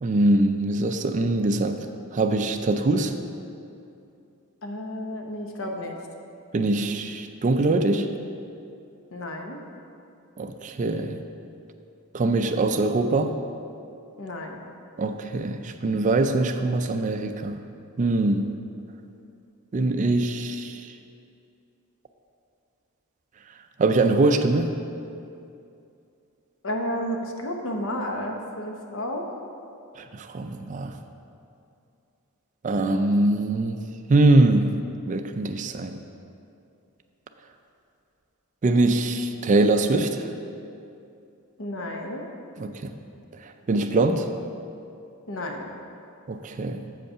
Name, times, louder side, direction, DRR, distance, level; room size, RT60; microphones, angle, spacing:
voice 1, 0.0-1.9 2.1-3.1 6.5-8.1 10.4-11.2 12.1-13.4 15.0-17.6 18.0-18.5 19.7-20.8 23.8-24.8 30.1-30.9 32.6-33.8 34.1-34.7 35.1-36.0 38.6-40.2 42.6-42.7 43.7-44.3 46.3-46.8, right 2 dB, 35° right, 6 dB, 0.3 m, -22 dB
voice 2, 4.6-6.0 9.1-9.6 14.2-14.6 26.6-29.3 41.6-42.3 45.3-45.6, left 1 dB, 60° left, 2 dB, 0.8 m, -31 dB
7.6 x 5.4 x 5.6 m, 2.6 s
head